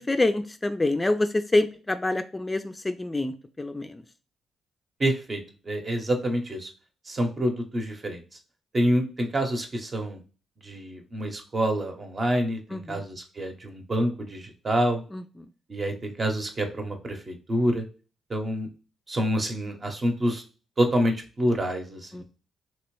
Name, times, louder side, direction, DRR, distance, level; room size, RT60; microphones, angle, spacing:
voice 1, 0.0-4.0 12.7-13.0 15.1-15.5 22.1-22.2, left 2 dB, 20° left, 9 dB, 0.3 m, -27 dB
voice 2, 5.0-5.4 5.7-6.7 7.1-8.2 8.7-10.2 10.6-15.0 15.7-17.8 18.3-18.7 19.1-20.4 20.8-22.2, right 1 dB, 45° right, 3 dB, 0.9 m, -27 dB
3.0 x 2.9 x 3.1 m, 0.35 s
hypercardioid pair, 45°, 0 cm